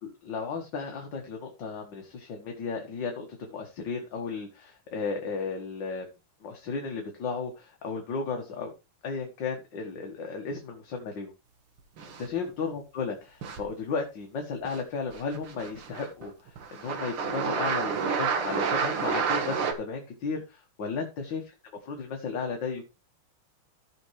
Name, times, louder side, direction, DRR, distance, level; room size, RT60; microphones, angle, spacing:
voice 1, 0.0-6.1 6.4-8.7 9.0-11.3 12.1-21.5 21.8-22.8, left 4 dB, 60° left, 2 dB, 2.1 m, -34 dB
sound 1, 12.0-12.5 13.4-13.7 14.6-14.8 15.1-16.2 16.6-19.7, right 6 dB, 75° right, 2.4 m, -30 dB
15.0 x 6.0 x 3.2 m, 0.29 s
omnidirectional pair, 2.4 m